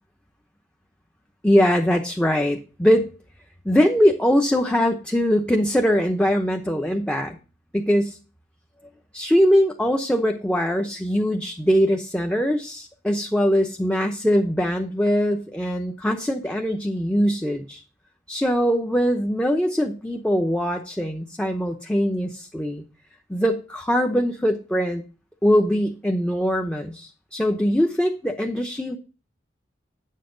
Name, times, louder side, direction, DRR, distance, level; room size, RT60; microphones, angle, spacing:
voice 1, 1.4-3.1 3.6-7.4 7.7-8.2 9.1-17.8 18.3-22.8 23.3-25.0 25.4-29.0, equal, 5° left, 3 dB, 0.8 m, -22 dB
9.3 x 7.5 x 3.8 m, 0.34 s
head